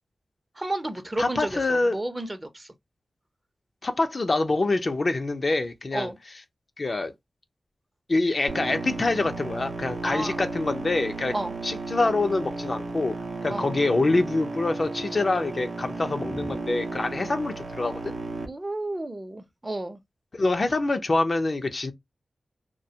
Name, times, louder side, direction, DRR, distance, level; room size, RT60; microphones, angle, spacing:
voice 1, 0.6-1.6 1.9-2.7 5.9-6.2 10.0-10.4 11.3-11.5 13.5-13.7 16.3-16.5 18.5-20.0, right 1 dB, 30° right, 0.6 m, -32 dB
voice 2, 1.2-2.0 3.8-6.1 6.8-7.1 8.1-11.3 11.6-13.1 13.4-18.2 20.3-21.9, left 2 dB, 55° left, 0.5 m, -25 dB
sound 1, 8.5-18.5, right 3 dB, 70° right, 0.6 m, -34 dB
2.3 x 2.2 x 2.7 m
cardioid pair, 40°, 0 cm